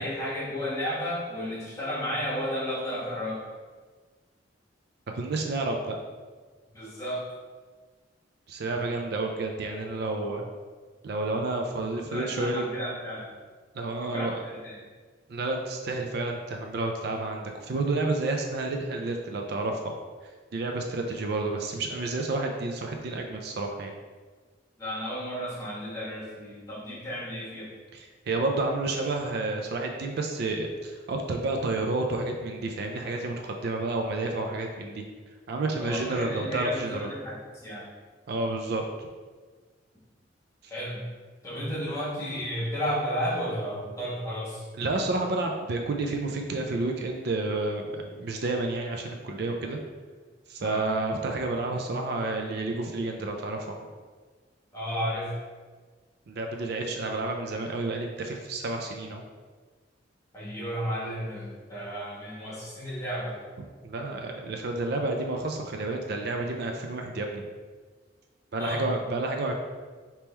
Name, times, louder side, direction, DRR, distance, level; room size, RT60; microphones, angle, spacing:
voice 1, 0.0-3.4 6.7-7.2 10.2-10.4 11.6-13.3 14.0-14.7 24.8-27.7 35.8-37.3 37.6-37.9 40.7-41.1 41.4-44.6 50.6-50.8 54.7-55.3 60.3-63.4 68.6-68.9, equal, 15° left, -7 dB, 1.3 m, -33 dB
voice 2, 5.1-6.0 8.5-10.4 11.0-12.6 13.7-14.4 15.3-19.9 20.5-23.9 27.9-35.0 35.5-37.1 38.3-38.8 44.8-49.8 50.5-53.8 56.3-59.2 63.8-67.4 68.5-69.5, right 2 dB, 55° right, 3 dB, 0.4 m, -30 dB
3.5 x 2.9 x 4.3 m, 1.4 s
head